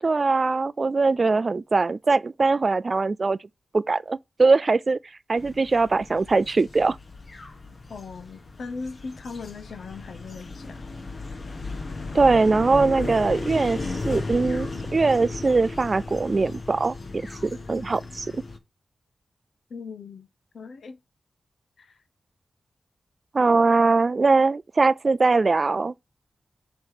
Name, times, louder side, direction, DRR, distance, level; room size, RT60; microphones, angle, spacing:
voice 1, 0.0-3.4 3.7-7.0 12.1-13.8 14.0-18.4 23.3-25.9, right 3 dB, 45° right, 0.4 m, -21 dB
sound 1, 5.4-18.6, left 3 dB, 55° left, 1.2 m, -35 dB
voice 2, 7.9-10.9 19.7-20.3 20.5-21.0 21.8-21.9, left 4 dB, 80° left, 0.9 m, -38 dB
7.6 x 3.0 x 4.8 m
wide cardioid pair, 90°, 0 cm